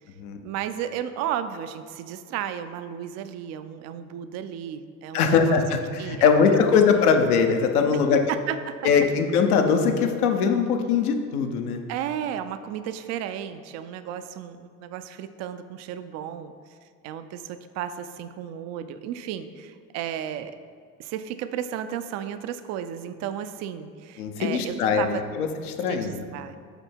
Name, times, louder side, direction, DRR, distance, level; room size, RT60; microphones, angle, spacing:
voice 1, 0.4-5.6 6.0-6.4 6.9-7.0 7.9-8.9 11.9-16.5 17.0-20.6 21.0-25.2 25.9-26.6, right 9 dB, 35° right, 11 dB, 0.4 m, -33 dB
voice 2, 5.1-8.2 8.8-11.8 24.2-25.5 25.8-26.2, left 6 dB, 65° left, 5 dB, 0.8 m, -21 dB
8.0 x 3.4 x 4.4 m, 2.1 s
figure-of-eight pair, 60°, 47 cm